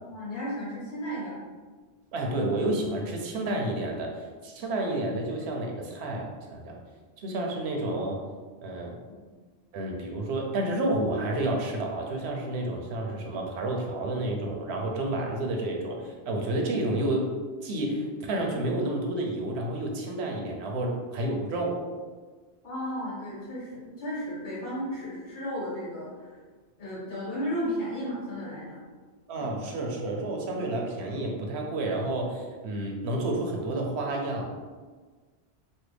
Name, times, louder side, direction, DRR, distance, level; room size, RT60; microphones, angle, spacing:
voice 1, 0.0-1.5 9.1-9.2 22.6-26.3 26.8-28.8 29.6-29.7 30.5-30.6, equal, 90° left, -8 dB, 1.5 m, -34 dB
voice 2, 2.1-6.8 7.2-8.2 8.6-9.0 9.7-17.3 17.6-21.8 29.3-34.5, right 1 dB, 75° right, 1 dB, 0.9 m, -30 dB
3.2 x 2.2 x 3.2 m, 1.4 s
omnidirectional pair, 1.1 m